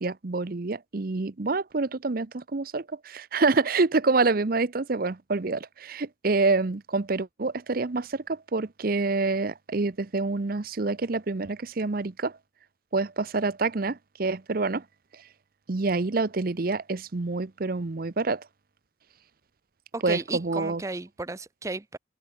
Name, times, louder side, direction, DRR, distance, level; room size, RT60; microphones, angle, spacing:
voice 1, 0.0-12.4 12.9-14.8 15.1-15.2 15.7-18.4 20.0-20.8, right 3 dB, 50° right, 0.7 m, -27 dB
voice 2, 19.9-22.0, right 3 dB, 15° right, 0.5 m, -34 dB
open air
head